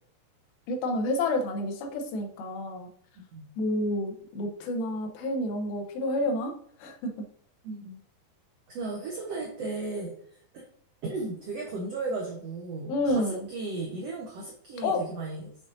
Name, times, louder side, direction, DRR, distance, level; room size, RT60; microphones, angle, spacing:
voice 1, 0.7-2.9 3.6-6.5 6.8-7.1 12.9-13.5 14.8-15.0, left 1 dB, 85° left, 4 dB, 2.8 m, -29 dB
voice 2, 7.6-8.0 8.7-10.1 10.5-10.6 11.0-15.5, right 3 dB, 85° right, -1 dB, 1.4 m, -35 dB
6.8 x 5.4 x 2.6 m, 0.64 s
omnidirectional pair, 4.2 m